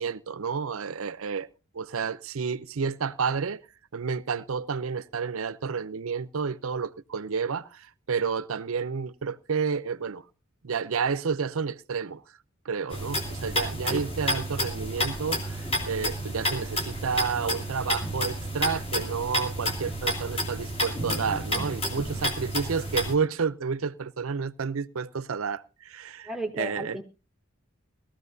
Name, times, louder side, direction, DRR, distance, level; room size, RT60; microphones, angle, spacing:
voice 1, 0.0-1.5 1.7-3.6 3.9-10.2 10.6-12.2 12.7-27.0, right 5 dB, 80° right, 0.6 m, -30 dB
sound 1, 12.9-23.1, equal, 30° left, 2.5 m, -30 dB
voice 2, 26.3-27.0, right 1 dB, ahead, 1.0 m, -34 dB
18.5 x 14.0 x 2.7 m
head